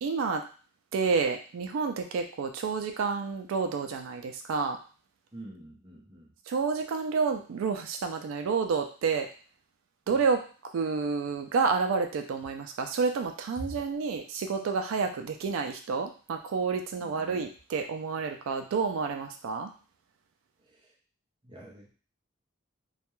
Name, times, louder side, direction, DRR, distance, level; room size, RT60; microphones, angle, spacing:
voice 1, 0.0-0.4 0.9-4.8 6.5-9.3 10.1-10.5 10.7-19.7, right 5 dB, 80° right, 5 dB, 0.3 m, -29 dB
voice 2, 5.3-6.3 10.1-10.2 13.6-13.7 17.0-17.4 20.7-20.9 21.4-22.0, right 1 dB, 25° right, -3 dB, 0.5 m, -45 dB
2.3 x 2.1 x 2.9 m, 0.38 s
head